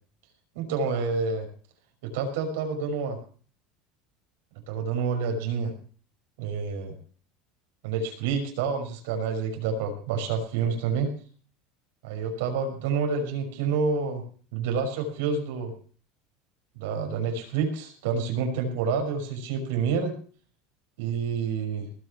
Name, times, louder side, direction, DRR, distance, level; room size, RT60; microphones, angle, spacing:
voice 1, 0.5-1.5 2.0-3.2 4.7-5.7 6.4-6.9 7.8-11.1 12.0-14.2 14.5-15.7 16.7-20.2 21.0-21.9, right 5 dB, 85° right, 4 dB, 5.9 m, -28 dB
19.5 x 6.5 x 7.4 m, 0.42 s
cardioid pair, 170°, 0 cm